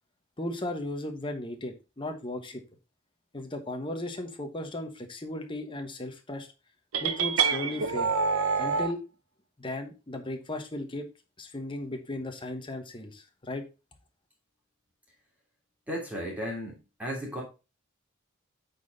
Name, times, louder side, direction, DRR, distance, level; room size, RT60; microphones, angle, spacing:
voice 1, 0.4-2.6 3.3-6.5 7.0-8.1 8.6-9.0 9.6-11.1 11.4-13.6, left 1 dB, 25° left, 5 dB, 1.2 m, -36 dB
sound 1, 6.9-8.9, right 5 dB, 75° right, 0.8 m, -26 dB
voice 2, 15.9-17.4, equal, 5° right, -3 dB, 3.0 m, -35 dB
8.3 x 4.3 x 4.0 m, 0.29 s
head